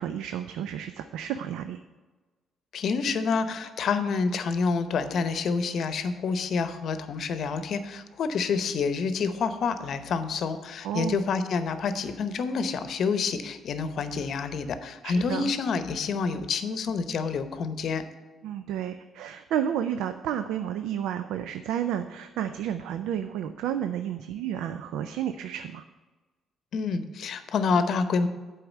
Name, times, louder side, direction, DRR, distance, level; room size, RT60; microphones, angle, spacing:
voice 1, 0.0-1.8 10.8-11.2 15.0-15.5 18.4-25.8, right 9 dB, 85° right, 10 dB, 0.3 m, -31 dB
voice 2, 2.7-18.0 26.7-28.3, left 5 dB, 65° left, 10 dB, 0.8 m, -28 dB
7.9 x 4.8 x 7.2 m, 1.3 s
cardioid pair, 75°, 0 cm